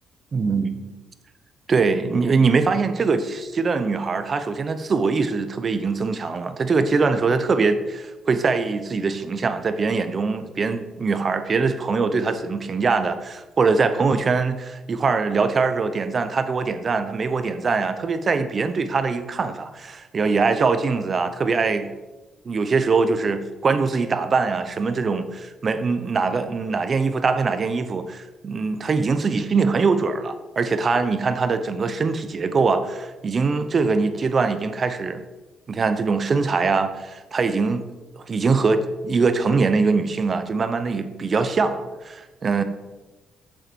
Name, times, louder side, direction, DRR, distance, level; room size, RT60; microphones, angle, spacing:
voice 1, 0.3-0.9 1.7-21.9 22.4-35.2 35.7-37.8 38.1-42.6, right 4 dB, 40° right, 10 dB, 0.8 m, -22 dB
7.9 x 7.3 x 4.6 m, 1.1 s
cardioid pair, 90°, 0 cm